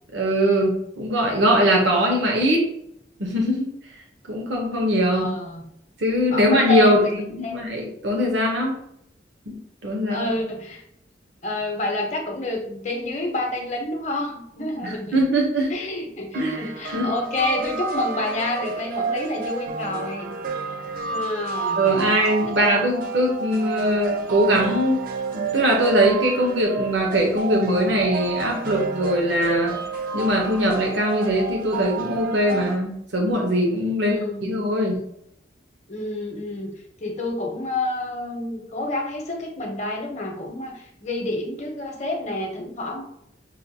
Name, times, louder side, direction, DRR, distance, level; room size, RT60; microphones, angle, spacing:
voice 1, 0.1-2.7 3.2-3.7 4.3-5.3 6.0-7.0 7.3-8.8 9.5-9.6 9.8-10.3 14.8-15.7 16.3-16.6 16.9-17.1 21.8-25.0 25.3-29.8 30.1-35.0, equal, 75° right, 0 dB, 0.7 m, -21 dB
voice 2, 5.1-5.6 6.3-7.1 7.4-7.6 10.1-10.8 11.4-15.2 15.7-20.3 21.1-22.2 22.4-22.9 34.0-34.6 35.9-36.7 37.0-43.1, left 1 dB, 40° left, 1 dB, 0.7 m, -28 dB
sound 1, 16.3-32.8, right 4 dB, 50° right, 0.4 m, -30 dB
5.7 x 2.2 x 2.6 m, 0.74 s
head